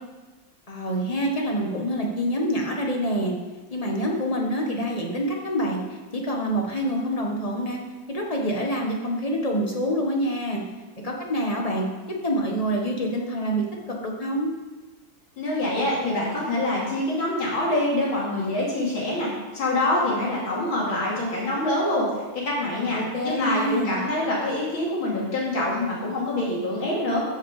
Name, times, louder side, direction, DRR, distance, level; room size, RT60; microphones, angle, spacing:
voice 1, 0.7-3.3 3.7-5.8 6.1-7.8 8.1-10.6 11.0-11.9 12.2-13.6 14.0-14.5 23.1-24.0, equal, 20° left, 0 dB, 1.3 m, -26 dB
voice 2, 15.4-27.2, left 1 dB, 80° left, -5 dB, 3.3 m, -25 dB
14.5 x 5.6 x 4.9 m, 1.2 s
omnidirectional pair, 2.2 m